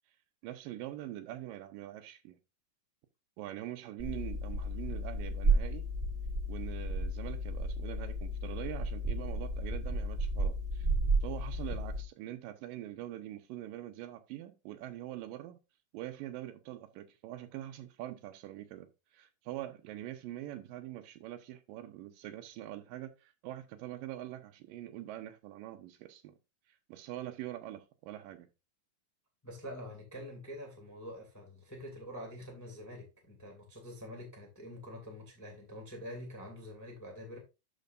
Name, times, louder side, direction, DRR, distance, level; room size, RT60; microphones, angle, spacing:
voice 1, 0.4-2.4 3.4-5.8 6.5-10.9 11.2-15.6 15.9-18.9 19.1-26.3 26.9-28.5, right 13 dB, 85° right, 2.4 m, -44 dB
sound 1, 4.0-12.0, right 2 dB, 50° right, 0.5 m, -33 dB
voice 2, 29.4-37.4, equal, 10° left, 1.1 m, -46 dB
12.0 x 5.1 x 2.5 m
omnidirectional pair, 4.1 m